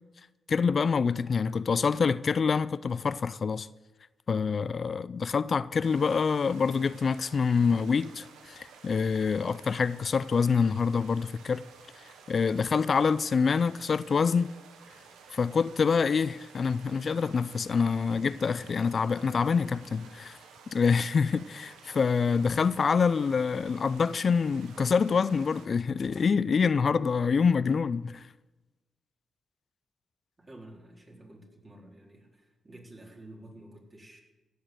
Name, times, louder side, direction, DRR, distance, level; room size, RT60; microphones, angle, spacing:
voice 1, 0.5-3.7 4.3-11.6 12.3-14.5 15.3-20.4 20.7-28.2, left 5 dB, 55° left, 0.3 m, -26 dB
sound 1, 5.8-25.7, right 6 dB, 85° right, 1.1 m, -53 dB
voice 2, 30.4-34.2, right 1 dB, 40° right, 4.1 m, -50 dB
15.5 x 6.7 x 7.8 m
supercardioid pair, 45°, 0 cm